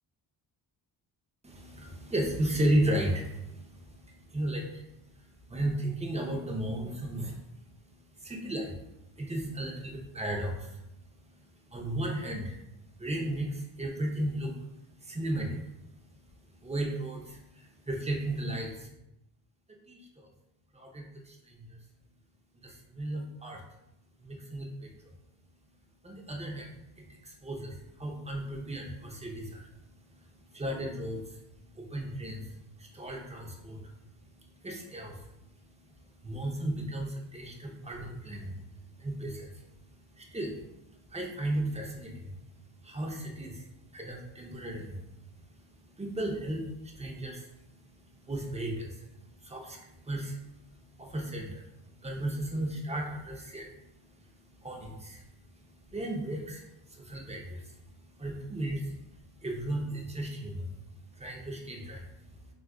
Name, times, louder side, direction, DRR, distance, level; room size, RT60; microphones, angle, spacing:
voice 1, 1.4-7.4 7.8-16.2 16.5-18.9 19.9-20.3 20.7-21.8 22.5-23.6 24.2-25.1 26.0-62.5, right 1 dB, 15° right, 0 dB, 0.7 m, -36 dB
3.3 x 2.5 x 2.3 m, 0.88 s
supercardioid pair, 55°, 44 cm